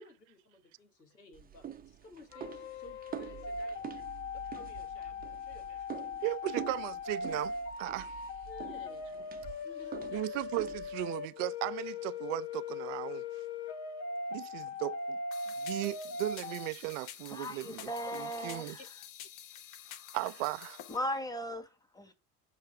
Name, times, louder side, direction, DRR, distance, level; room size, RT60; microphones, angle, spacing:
voice 1, 0.0-3.9 4.5-6.0 6.5-6.7 8.5-9.2 9.6-10.5 18.8-18.9, left 2 dB, 85° left, 1.5 m, -54 dB
sound 1, 1.3-11.1, right 9 dB, 20° right, 0.7 m, -46 dB
sound 2, 2.3-16.7, left 4 dB, 70° left, 1.1 m, -40 dB
voice 2, 6.2-8.2 10.1-13.2 14.3-15.2 15.6-18.8 20.1-20.8, right 20 dB, 55° right, 0.5 m, -37 dB
sound 3, 15.3-21.0, left 10 dB, 50° left, 1.2 m, -49 dB
voice 3, 17.3-18.9 20.9-22.1, equal, 10° left, 1.4 m, -38 dB
6.6 x 3.2 x 4.7 m
figure-of-eight pair, 70°, 48 cm